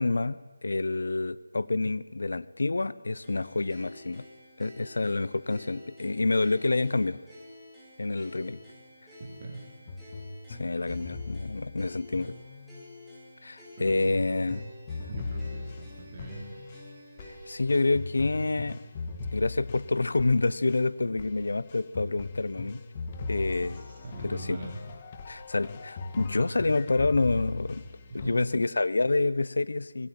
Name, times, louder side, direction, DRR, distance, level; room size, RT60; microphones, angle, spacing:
voice 1, 0.0-4.2 4.6-7.2 8.0-8.6 10.5-12.3 13.4-14.6 17.5-18.8 19.3-22.8 23.3-23.8 24.2-24.6 25.3-27.8 28.1-30.1, left 3 dB, 70° left, 17 dB, 1.1 m, -28 dB
sound 1, 3.2-17.7, left 1 dB, 5° right, 6.2 m, -50 dB
voice 2, 9.2-9.7 13.8-14.2 15.1-16.4 23.7-24.8 28.1-28.5, right 2 dB, 30° right, -1 dB, 3.8 m, -42 dB
sound 2, 9.9-13.0 13.9-28.6, left 3 dB, 25° left, 2.0 m, -39 dB
26.0 x 22.0 x 9.1 m, 1.3 s
figure-of-eight pair, 170°, 0 cm